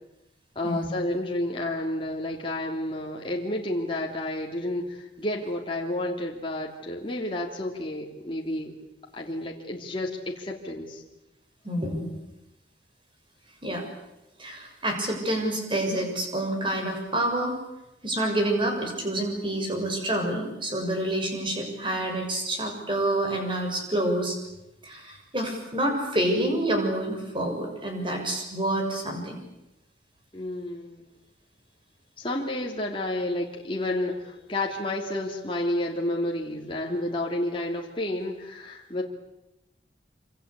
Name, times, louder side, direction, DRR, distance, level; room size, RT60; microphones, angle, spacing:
voice 1, 0.5-8.7 9.1-11.0 30.3-31.0 32.2-39.0, left 1 dB, 30° left, -1 dB, 3.0 m, -30 dB
voice 2, 11.6-12.1 13.6-13.9 14.4-17.6 18.0-24.4 24.8-29.4, right 1 dB, 25° right, 3 dB, 6.9 m, -28 dB
27.0 x 26.5 x 8.4 m, 0.93 s
head